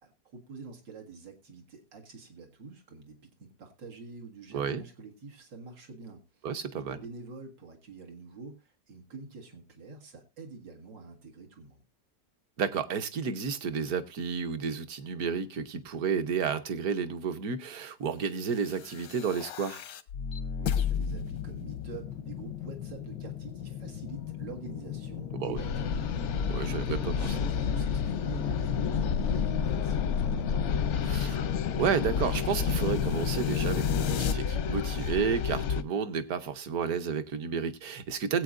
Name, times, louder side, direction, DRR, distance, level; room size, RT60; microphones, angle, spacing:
voice 1, 0.0-6.4 6.8-11.8 20.6-31.2, right 4 dB, 85° right, 2.6 m, -47 dB
voice 2, 4.5-4.8 6.4-7.0 12.6-19.8 25.3-25.6 26.5-27.1 31.1-31.4 31.8-38.4, right 6 dB, 60° right, 1.3 m, -31 dB
sound 1, 18.6-34.3, left 9 dB, 85° left, 1.5 m, -35 dB
sound 2, 25.6-35.8, left 6 dB, 60° left, 0.7 m, -30 dB
20.0 x 8.6 x 2.5 m
omnidirectional pair, 1.9 m